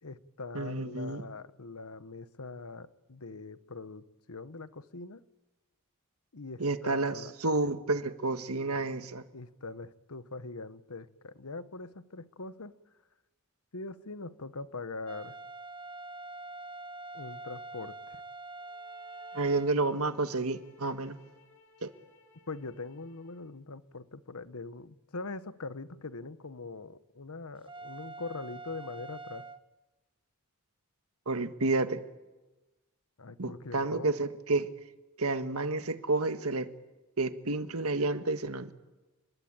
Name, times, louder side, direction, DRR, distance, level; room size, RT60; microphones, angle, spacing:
voice 1, 0.0-5.2 6.3-7.3 9.3-12.7 13.7-15.4 17.1-18.2 22.5-29.5 33.2-34.1, left 3 dB, 90° left, 1.2 m, -42 dB
voice 2, 0.5-1.2 6.6-9.2 19.3-21.2 21.8-21.9 31.2-32.0 33.4-34.7 35.2-36.7 37.2-38.7, right 3 dB, 85° right, 1.6 m, -30 dB
sound 1, 15.1-19.7 27.7-29.6, right 2 dB, 25° right, 1.0 m, -44 dB
sound 2, 18.6-23.6, left 3 dB, 70° left, 4.6 m, -62 dB
30.0 x 21.5 x 8.9 m
head